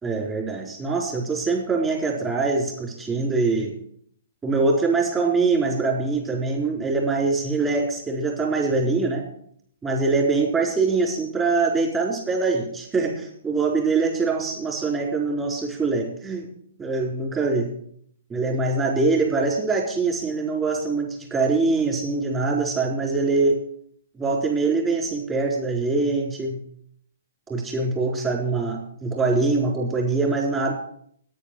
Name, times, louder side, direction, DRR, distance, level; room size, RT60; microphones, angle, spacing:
voice 1, 0.0-3.7 4.4-9.2 9.8-16.5 16.8-17.7 18.3-23.6 24.2-26.6 27.5-30.7, right 3 dB, 15° right, 0 dB, 4.2 m, -23 dB
9.9 x 9.4 x 7.7 m, 0.66 s
hypercardioid pair, 135°, 0 cm